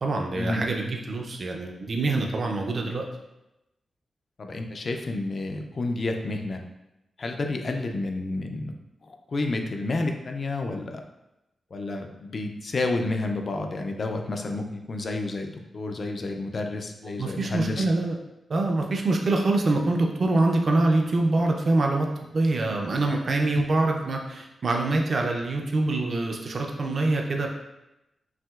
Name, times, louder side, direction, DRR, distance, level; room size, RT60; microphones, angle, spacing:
voice 1, 0.0-3.1 17.1-18.2 18.5-22.1 22.3-27.5, right 2 dB, 40° right, 2 dB, 0.4 m, -25 dB
voice 2, 4.4-6.6 7.2-8.7 9.1-11.0 11.7-17.9 23.5-23.6, left 2 dB, 40° left, 4 dB, 0.4 m, -30 dB
5.8 x 2.7 x 2.3 m, 0.92 s
wide cardioid pair, 180°, 0 cm